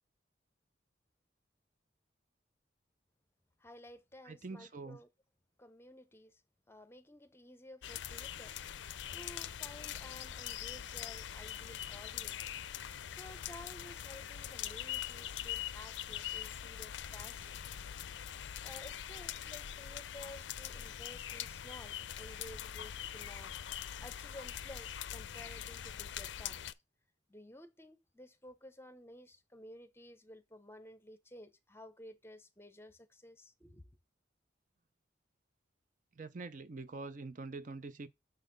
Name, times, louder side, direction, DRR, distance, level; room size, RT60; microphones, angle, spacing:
voice 1, 3.6-5.1 5.6-6.4 6.7-8.7 9.1-12.5 13.1-17.6 18.2-23.6 24.0-26.6 27.3-33.9, left 1 dB, 15° left, 0.8 m, -54 dB
voice 2, 4.2-5.0 36.1-38.1, right 3 dB, 45° right, 0.5 m, -45 dB
sound 1, 7.8-26.7, left 10 dB, 75° left, 0.5 m, -43 dB
6.5 x 4.1 x 5.2 m
head